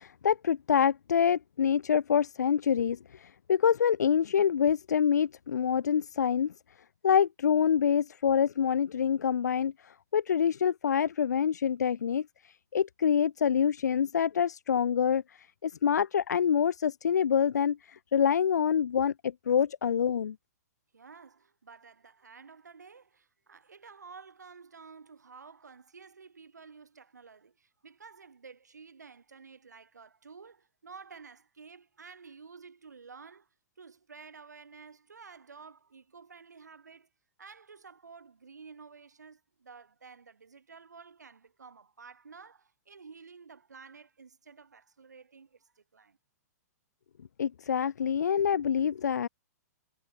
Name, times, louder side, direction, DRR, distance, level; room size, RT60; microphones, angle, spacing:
voice 1, 0.0-6.5 7.0-20.4 47.4-49.3, left 8 dB, 80° left, 0.6 m, -26 dB
voice 2, 20.9-33.5 33.8-37.1 37.4-46.2, right 5 dB, 85° right, 4.8 m, -52 dB
hypercardioid pair, 120°, 9 cm